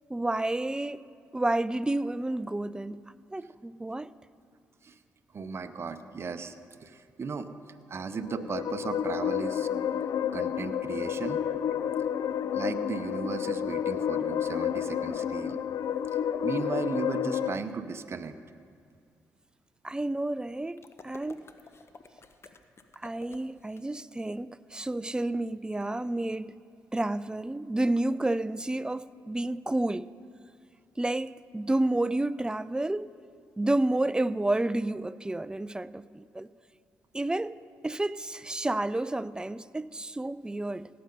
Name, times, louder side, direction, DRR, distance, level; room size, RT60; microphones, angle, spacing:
voice 1, 0.1-1.0 1.3-3.0 3.3-4.1 19.8-21.4 23.0-26.5 26.9-30.1 31.0-33.2 33.6-36.5 37.1-37.6 37.8-40.9, right 2 dB, 15° right, 0.4 m, -30 dB
voice 2, 5.3-6.6 6.8-7.5 7.9-9.7 10.3-11.4 12.5-15.6 16.4-18.4, right 5 dB, 45° right, 0.7 m, -35 dB
sound 1, 8.1-17.6, left 9 dB, 65° left, 0.4 m, -30 dB
sound 2, 20.8-23.8, left 4 dB, 45° left, 0.9 m, -52 dB
17.0 x 7.8 x 5.3 m
supercardioid pair, 55°, 6 cm